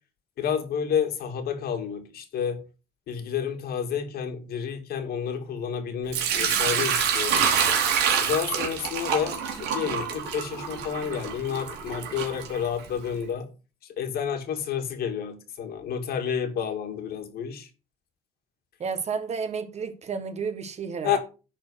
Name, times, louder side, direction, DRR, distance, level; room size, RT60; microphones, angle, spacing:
voice 1, 0.4-2.6 3.1-7.5 8.2-13.5 14.0-17.7 21.0-21.2, left 8 dB, 65° left, 2.3 m, -30 dB
Sink (filling or washing) / Liquid, 6.1-13.1, right 7 dB, 80° right, 2.6 m, -26 dB
voice 2, 18.8-21.2, right 5 dB, 40° right, 1.5 m, -31 dB
10.5 x 4.5 x 6.3 m
cardioid pair, 110°, 17 cm